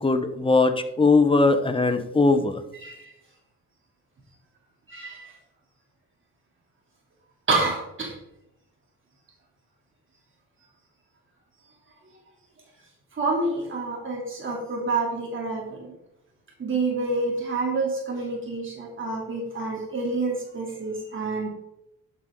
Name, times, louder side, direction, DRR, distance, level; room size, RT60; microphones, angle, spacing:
voice 1, 0.0-2.6, left 3 dB, 15° left, 8 dB, 1.1 m, -20 dB
voice 2, 2.7-3.1 4.9-5.3 7.5-8.1 13.2-15.9 16.6-21.5, right 3 dB, 40° right, -2 dB, 3.2 m, -28 dB
11.0 x 7.8 x 3.9 m, 0.88 s
cardioid pair, 90°, 30 cm